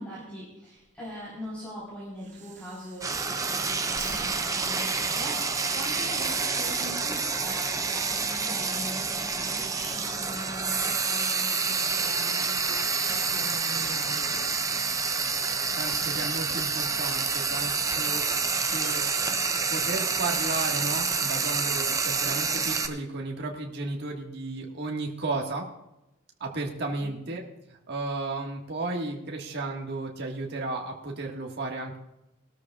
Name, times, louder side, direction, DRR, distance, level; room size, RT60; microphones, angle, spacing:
voice 1, 0.0-14.5 27.0-27.2, equal, 5° left, -8 dB, 4.1 m, -42 dB
Breathing, 0.8-3.5 3.8-5.8, right 5 dB, 35° right, 1.0 m, -46 dB
Frying (food), 3.0-22.9, right 4 dB, 15° right, 0.6 m, -28 dB
voice 2, 15.8-18.2 18.7-19.1 19.7-25.7 26.4-27.4 27.7-32.0, right 2 dB, 50° right, -1 dB, 1.7 m, -34 dB
19.5 x 13.0 x 2.4 m, 0.89 s
head